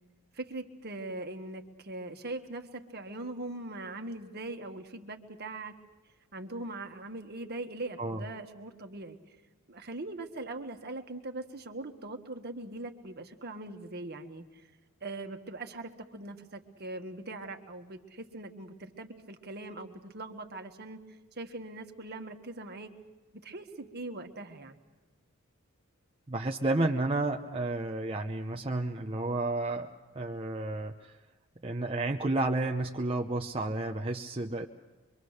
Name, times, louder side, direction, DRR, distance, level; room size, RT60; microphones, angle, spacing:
voice 1, 0.3-5.7 6.3-9.2 9.7-14.7 15.0-22.9 23.3-24.8, right 2 dB, 45° right, 5 dB, 1.6 m, -41 dB
voice 2, 26.3-31.2 31.6-34.7, right 2 dB, 25° right, 2 dB, 0.7 m, -31 dB
24.5 x 24.5 x 6.5 m, 1.2 s
head